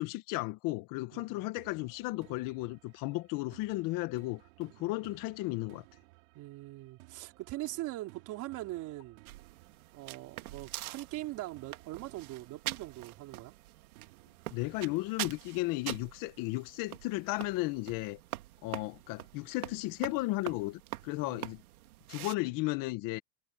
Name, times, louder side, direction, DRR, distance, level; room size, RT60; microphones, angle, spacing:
voice 1, 0.0-5.8 14.5-18.2 18.6-21.6 22.1-23.2, left 20 dB, 50° left, 1.7 m, -34 dB
sound 1, 1.6-16.5, right 25 dB, 65° right, 4.4 m, -60 dB
voice 2, 6.4-9.2 9.9-13.5 21.2-21.5, right 17 dB, 45° right, 3.5 m, -42 dB
sound 2, 9.3-22.4, right 16 dB, 90° right, 2.2 m, -44 dB
supercardioid pair, 135°, 43 cm